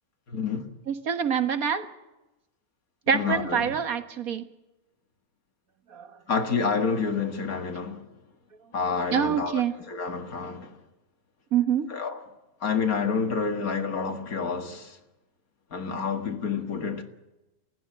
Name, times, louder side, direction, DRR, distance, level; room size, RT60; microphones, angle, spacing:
voice 1, 0.3-0.7 3.1-3.7 6.3-8.0 8.7-10.8 11.9-12.2 12.6-15.0 15.7-17.0, left 5 dB, 80° left, 2.5 m, -29 dB
voice 2, 0.9-1.9 3.1-4.4 5.9-6.1 9.1-9.7 11.5-11.9, right 8 dB, 80° right, 1.9 m, -25 dB
30.0 x 15.5 x 7.6 m
omnidirectional pair, 1.5 m